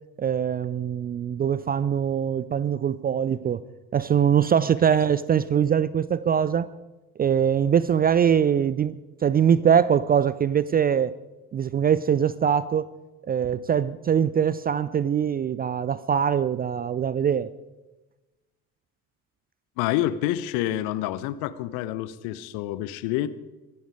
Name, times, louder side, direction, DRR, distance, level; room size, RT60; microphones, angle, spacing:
voice 1, 0.2-3.6 3.9-6.7 7.2-8.9 9.2-11.2 11.5-12.9 13.3-17.5, right 8 dB, 20° right, 18 dB, 0.5 m, -22 dB
voice 2, 19.8-23.3, left 13 dB, 55° left, 16 dB, 1.0 m, -28 dB
25.0 x 11.0 x 4.9 m, 1.1 s
figure-of-eight pair, 55°, 43 cm